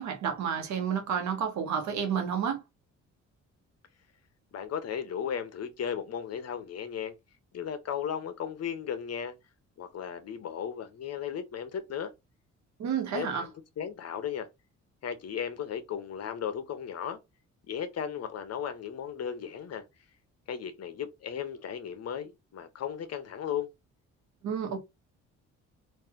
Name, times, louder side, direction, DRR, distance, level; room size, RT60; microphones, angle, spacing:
voice 1, 0.0-2.6 12.8-13.5 24.4-24.8, right 7 dB, 70° right, 1.2 m, -30 dB
voice 2, 4.5-7.2 7.5-9.3 9.8-12.1 13.1-13.5 13.8-14.5 15.0-17.2 17.7-19.8 20.5-23.7, left 8 dB, 55° left, 0.9 m, -35 dB
3.1 x 2.6 x 3.6 m
cardioid pair, 90°, 30 cm